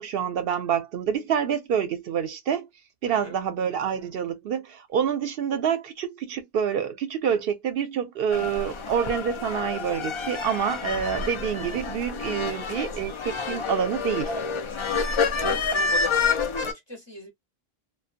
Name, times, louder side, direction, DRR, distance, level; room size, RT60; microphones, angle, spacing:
voice 1, 0.0-2.7 3.0-14.3, right 8 dB, 70° right, 0.7 m, -27 dB
voice 2, 3.1-3.4 15.3-15.9 16.2-17.3, left 1 dB, 30° left, 0.8 m, -40 dB
sound 1, 8.3-16.7, left 4 dB, 50° left, 0.3 m, -28 dB
2.6 x 2.2 x 2.4 m
omnidirectional pair, 1.1 m